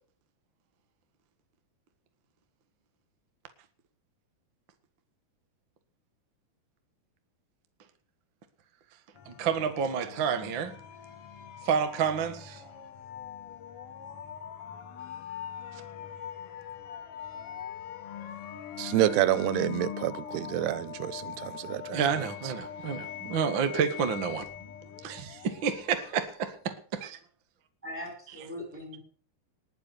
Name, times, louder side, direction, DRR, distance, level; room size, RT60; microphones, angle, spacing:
sound 1, 9.2-26.7, left 9 dB, 80° left, 1.2 m, -42 dB
voice 1, 9.2-10.8 11.6-12.7 15.7-15.8 21.9-24.5 25.0-27.2 28.3-28.5, right 7 dB, 55° right, 1.3 m, -30 dB
voice 2, 18.8-22.0 22.4-22.5, right 14 dB, 85° right, 2.9 m, -28 dB
voice 3, 27.8-29.0, left 1 dB, 5° right, 5.0 m, -40 dB
20.0 x 6.9 x 6.8 m
omnidirectional pair, 4.6 m